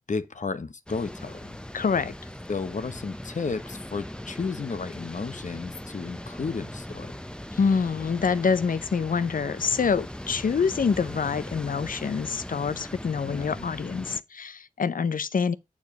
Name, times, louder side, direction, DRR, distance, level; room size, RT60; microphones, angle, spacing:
voice 1, 0.1-1.5 2.5-7.2 13.2-13.7, left 4 dB, 60° left, 1.0 m, -33 dB
sound 1, 0.9-14.2, left 1 dB, 5° left, 0.7 m, -39 dB
voice 2, 1.7-2.1 7.5-15.6, left 5 dB, 80° left, 0.6 m, -26 dB
8.6 x 4.9 x 5.8 m
wide cardioid pair, 55°, 14 cm